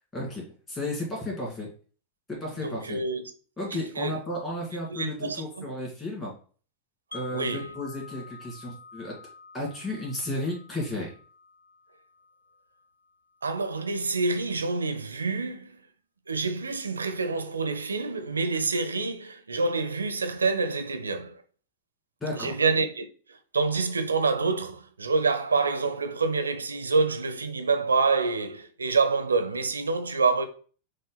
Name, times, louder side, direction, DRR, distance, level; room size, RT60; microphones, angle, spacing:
voice 1, 0.1-1.7 2.3-3.0 3.6-6.3 7.1-9.1 9.5-11.1 22.2-22.5, left 1 dB, 15° left, 2.1 m, -33 dB
voice 2, 2.6-3.2 3.7-4.1 4.9-5.7 7.3-7.7 13.4-15.8 16.3-21.4 22.3-23.1 23.5-30.4, right 4 dB, 75° right, 0.6 m, -27 dB
Wind chime, 7.1-13.1, left 4 dB, 80° left, 0.7 m, -48 dB
6.3 x 2.2 x 3.9 m
figure-of-eight pair, 90°, 0 cm